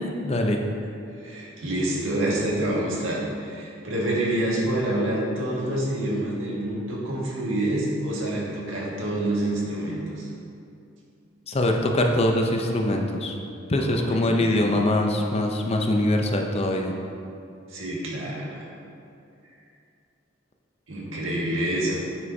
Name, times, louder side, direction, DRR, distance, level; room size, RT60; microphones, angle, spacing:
voice 1, 0.2-0.6 11.5-13.4 13.7-16.9, left 1 dB, 30° left, 2 dB, 0.6 m, -23 dB
voice 2, 1.2-10.3 13.7-14.8 17.7-18.7 20.9-22.0, right 1 dB, 85° right, -5 dB, 1.6 m, -27 dB
9.2 x 6.1 x 2.7 m, 2.5 s
head